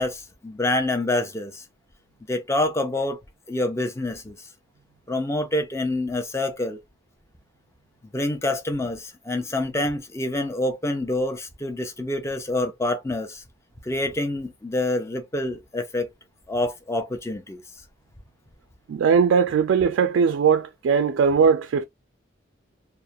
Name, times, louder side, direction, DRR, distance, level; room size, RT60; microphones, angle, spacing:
voice 1, 0.0-1.6 2.3-3.2 3.5-4.3 5.1-6.8 8.1-13.4 13.8-16.1 16.5-17.6, left 2 dB, 15° left, 0.4 m, -27 dB
voice 2, 18.9-21.8, right 6 dB, 75° right, 0.3 m, -19 dB
2.3 x 2.0 x 2.7 m
head